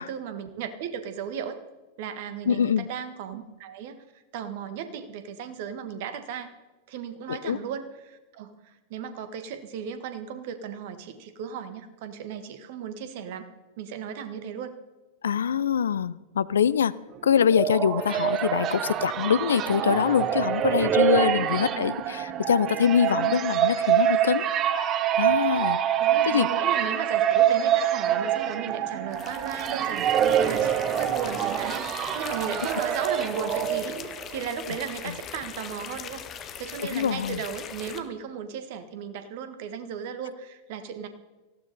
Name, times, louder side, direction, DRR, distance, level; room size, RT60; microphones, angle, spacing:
voice 1, 0.0-1.6 2.0-4.0 4.3-6.5 6.9-13.5 13.8-14.8 21.6-22.0 23.1-23.4 26.0-41.1, right 7 dB, 50° right, 10 dB, 1.8 m, -36 dB
voice 2, 2.5-2.9 7.3-7.6 15.2-16.9 17.2-24.8 25.2-26.0 26.3-26.5 36.9-37.4, left 8 dB, 65° left, 19 dB, 0.5 m, -24 dB
sound 1, 17.2-34.2, right 10 dB, 30° right, 1.0 m, -25 dB
sound 2, 29.1-38.0, left 8 dB, 30° left, 1.5 m, -40 dB
19.0 x 15.5 x 4.3 m, 1.1 s
figure-of-eight pair, 90°, 0 cm